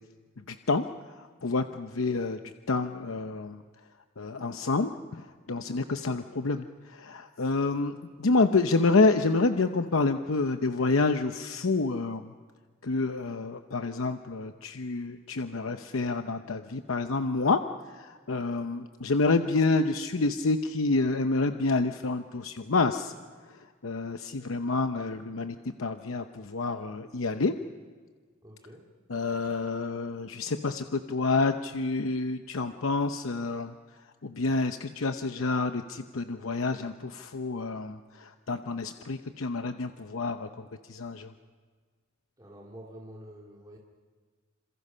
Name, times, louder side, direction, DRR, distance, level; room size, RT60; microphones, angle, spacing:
voice 1, 0.5-0.8 1.2-2.4 2.7-3.6 4.2-7.9 8.2-12.3 12.8-17.6 17.9-23.1 23.8-27.5 29.1-33.7 34.2-41.3, left 3 dB, 75° left, 8 dB, 0.8 m, -28 dB
voice 2, 28.4-28.9 42.4-43.8, equal, 20° right, -2 dB, 2.4 m, -47 dB
27.5 x 27.0 x 5.6 m, 1.5 s
head